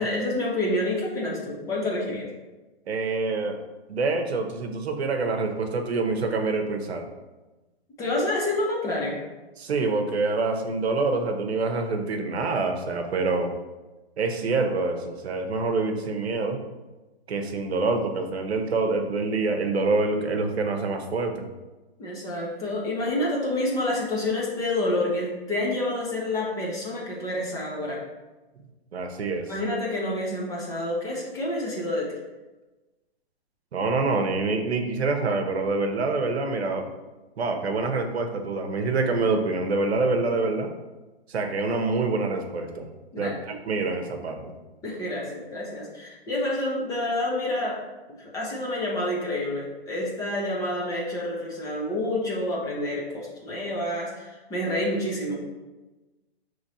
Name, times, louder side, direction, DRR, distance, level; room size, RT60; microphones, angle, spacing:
voice 1, 0.0-2.3 8.0-9.2 22.0-28.0 29.5-32.2 43.1-43.4 44.8-47.8 48.2-55.5, left 1 dB, 10° left, -4 dB, 0.5 m, -28 dB
voice 2, 2.9-3.6 3.9-7.1 9.6-13.5 14.2-16.6 17.3-21.5 28.9-29.5 33.7-36.9 37.4-40.7 41.3-42.9 43.2-44.5, right 3 dB, 85° right, 5 dB, 0.8 m, -26 dB
5.9 x 3.1 x 2.7 m, 1.1 s
hypercardioid pair, 140°, 31 cm